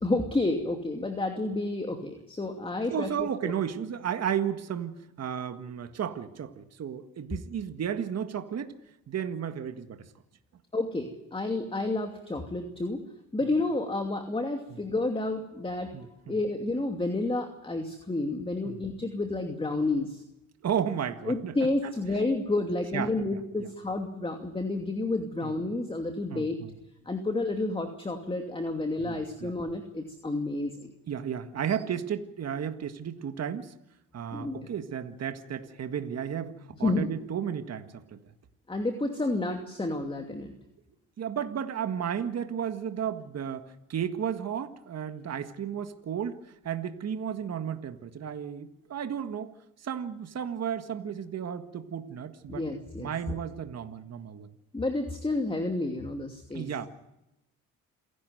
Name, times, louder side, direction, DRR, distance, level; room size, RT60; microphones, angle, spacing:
voice 1, 0.0-3.5 10.7-13.0 13.3-15.9 16.3-20.2 21.3-26.6 27.1-30.9 34.3-34.7 36.8-37.1 38.7-40.5 52.5-53.1 54.7-56.7, left 2 dB, 15° left, 4 dB, 2.6 m, -30 dB
voice 2, 2.9-8.7 9.1-10.1 15.9-16.4 18.6-18.8 20.6-21.9 22.9-23.7 25.4-25.5 26.3-26.7 29.0-29.5 31.1-33.7 34.1-38.2 41.2-49.5 49.8-52.7 53.0-54.5 56.5-56.9, right 8 dB, 50° right, 8 dB, 1.8 m, -33 dB
28.0 x 12.0 x 9.3 m, 0.90 s
supercardioid pair, 80°, 34 cm